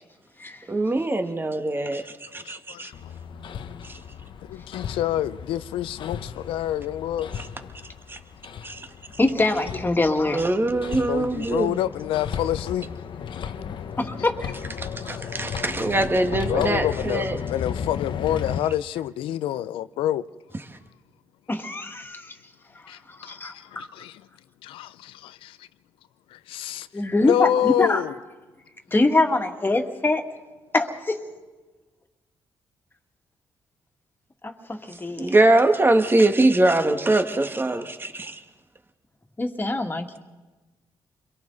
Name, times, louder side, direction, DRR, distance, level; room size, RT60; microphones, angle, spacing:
voice 1, 0.7-2.9 3.8-4.0 8.1-8.2 8.6-8.9 10.3-11.8 14.8-17.4 35.2-38.4, right 2 dB, 25° right, 1.7 m, -22 dB
voice 2, 2.4-3.1 4.4-7.3 11.1-12.9 15.0-15.3 16.5-20.3 22.9-24.2 24.6-25.7 26.3-26.9 27.2-28.1, left 12 dB, 90° left, 0.5 m, -28 dB
Hammer, 2.9-18.6, left 7 dB, 65° left, 0.9 m, -35 dB
voice 3, 9.2-10.5 14.0-14.5 21.5-22.4 22.8-23.9 26.9-28.0 28.9-30.2 30.7-31.2 34.4-35.3 39.4-40.2, left 2 dB, 25° left, 2.2 m, -24 dB
29.0 x 22.5 x 4.0 m
supercardioid pair, 65°, 9 cm